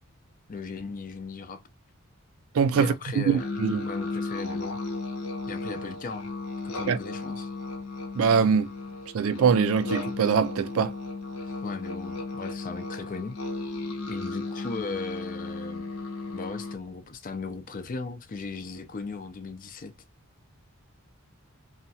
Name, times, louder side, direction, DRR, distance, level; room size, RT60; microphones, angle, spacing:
voice 1, 0.5-1.6 2.7-3.5 3.8-4.8 5.5-6.3 6.6-7.5 11.4-13.4 14.1-15.9 16.3-20.0, left 4 dB, 40° left, 0.4 m, -37 dB
voice 2, 2.5-3.9 6.9-7.0 8.2-8.7 9.1-10.9, right 6 dB, 65° right, 0.4 m, -23 dB
sound 1, 3.4-16.7, left 3 dB, 80° left, 0.8 m, -35 dB
2.8 x 2.3 x 2.7 m
head